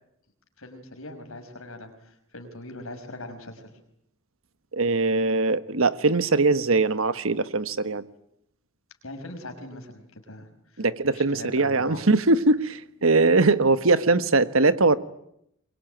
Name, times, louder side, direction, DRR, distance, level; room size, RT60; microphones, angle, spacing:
voice 1, 0.6-3.7 9.0-12.0, left 2 dB, 85° left, 5 dB, 5.5 m, -41 dB
voice 2, 4.7-8.0 10.8-15.0, right 3 dB, 75° right, 13 dB, 1.4 m, -21 dB
24.0 x 23.0 x 9.2 m, 0.77 s
head